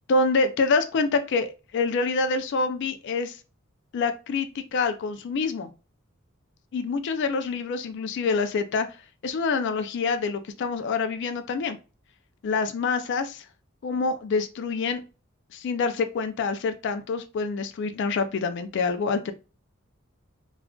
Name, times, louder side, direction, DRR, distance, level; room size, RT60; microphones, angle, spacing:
voice 1, 0.1-3.4 3.9-5.7 6.7-8.9 9.2-11.8 12.4-13.4 13.8-15.0 15.5-19.3, left 4 dB, 60° left, 9 dB, 0.3 m, -26 dB
2.3 x 2.3 x 3.5 m, 0.32 s
head